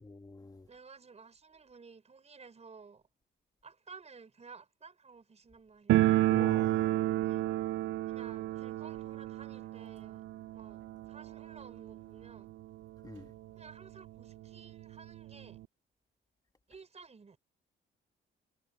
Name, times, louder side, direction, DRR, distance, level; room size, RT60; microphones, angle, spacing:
voice 1, 0.0-0.7 6.3-7.0 13.0-13.3, left 3 dB, 20° left, 1.6 m, -47 dB
voice 2, 0.7-3.0 3.6-6.0 7.1-7.4 8.0-10.2 10.5-12.5 13.6-15.6 16.7-17.4, right 5 dB, 35° right, 4.7 m, -54 dB
sound 1, 5.9-12.6 12.9-13.0 13.2-13.3 14.1-14.2 14.5-15.6, right 15 dB, 70° right, 0.4 m, -31 dB
cardioid pair, 90°, 20 cm